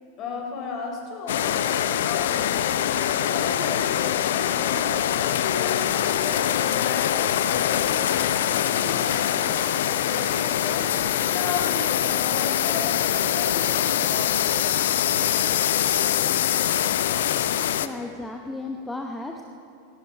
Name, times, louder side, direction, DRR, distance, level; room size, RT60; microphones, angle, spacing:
voice 1, 0.2-2.6 3.1-4.9 5.2-9.5 9.9-10.9 11.3-14.4, left 3 dB, 35° left, 1 dB, 3.7 m, -35 dB
sound 1, 1.3-17.9, left 10 dB, 60° left, 0.6 m, -23 dB
voice 2, 17.8-19.4, left 2 dB, 5° left, 3 dB, 0.9 m, -34 dB
18.0 x 17.0 x 4.7 m, 2.8 s
figure-of-eight pair, 90°, 0 cm